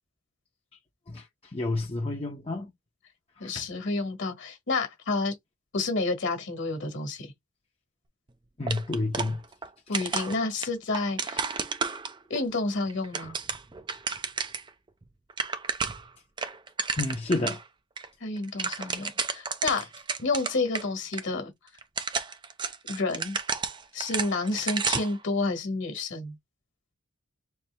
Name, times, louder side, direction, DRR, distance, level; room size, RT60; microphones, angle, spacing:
voice 1, 1.1-2.7 3.4-3.7 8.6-9.4 17.0-17.6, left 2 dB, 25° left, 0.7 m, -30 dB
voice 2, 3.4-5.3 5.7-7.3 9.9-11.4 12.3-13.4 18.2-19.1 19.4-19.9 20.2-21.5 22.9-23.4 23.9-26.3, left 3 dB, 55° left, 1.4 m, -29 dB
sound 1, 8.7-9.7 9.9-12.4 12.9-14.7 15.0-15.1 15.3-16.1 16.4-17.6 18.0-18.1 18.4-20.8 21.1-21.2 21.8-25.2, right 5 dB, 20° right, 0.4 m, -32 dB
4.3 x 2.7 x 3.3 m
head